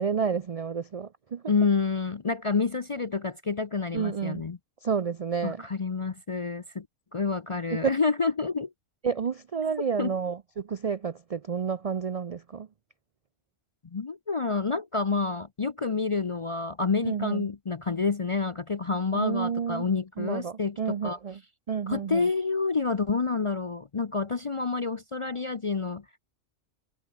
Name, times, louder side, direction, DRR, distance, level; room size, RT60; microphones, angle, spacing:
voice 1, 0.0-1.4 3.9-4.4 4.8-5.6 7.7-7.9 9.0-12.7 17.0-17.5 19.1-19.9 20.2-21.4 21.7-22.3, right 6 dB, 60° right, 0.3 m, -30 dB
voice 2, 1.5-4.6 5.4-6.9 7.1-8.7 10.0-10.1 13.9-21.2 21.9-26.2, left 4 dB, 40° left, 0.4 m, -28 dB
omnidirectional pair, 1.4 m